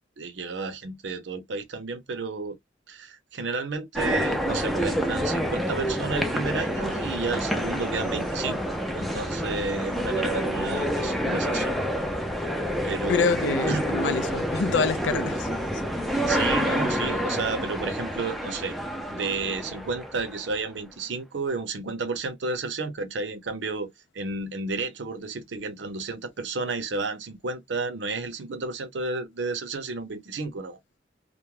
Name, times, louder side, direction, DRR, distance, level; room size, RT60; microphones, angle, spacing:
voice 1, 0.2-2.6 2.9-8.6 8.9-11.7 12.8-13.4 13.7-13.9 16.3-18.8 19.1-30.8, right 3 dB, 80° right, 0.6 m, -32 dB
sound 1, 4.0-20.6, equal, ahead, 0.4 m, -28 dB
voice 2, 13.1-15.5, left 4 dB, 75° left, 0.4 m, -26 dB
2.2 x 2.0 x 3.0 m
head